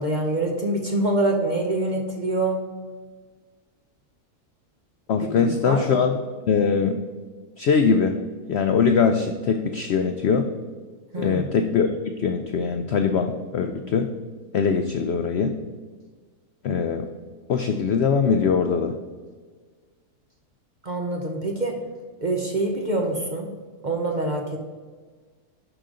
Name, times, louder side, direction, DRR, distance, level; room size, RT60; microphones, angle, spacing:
voice 1, 0.0-2.6 5.2-5.8 11.1-11.5 20.8-21.8 22.2-23.5 23.8-24.6, right 2 dB, 40° right, 2 dB, 0.7 m, -25 dB
voice 2, 5.1-6.2 6.5-7.0 7.6-8.1 8.5-10.5 11.2-14.1 14.5-15.5 16.6-17.1 17.5-19.0, left 6 dB, 75° left, 6 dB, 0.6 m, -22 dB
11.0 x 5.1 x 3.8 m, 1.5 s
omnidirectional pair, 1.7 m